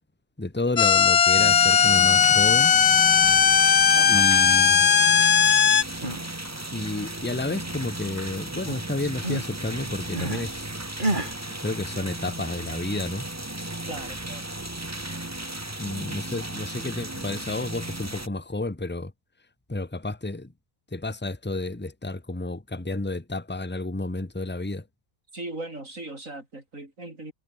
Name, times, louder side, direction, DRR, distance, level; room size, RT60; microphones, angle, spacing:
voice 1, 0.4-2.7 4.1-4.9 6.7-10.7 11.6-13.3 15.8-19.1 19.7-20.5 20.9-24.8, left 2 dB, 10° left, 1.4 m, -31 dB
sound 1, 0.8-5.8, left 7 dB, 60° left, 0.4 m, -18 dB
sound 2, 1.4-18.3, right 1 dB, 10° right, 1.5 m, -35 dB
voice 2, 3.9-4.3 13.9-14.4 25.3-27.3, right 2 dB, 65° right, 6.5 m, -38 dB
sound 3, 5.7-6.3 6.6-8.1 8.3-10.5 11.0-11.4, right 1 dB, 35° right, 5.8 m, -32 dB
omnidirectional pair, 1.5 m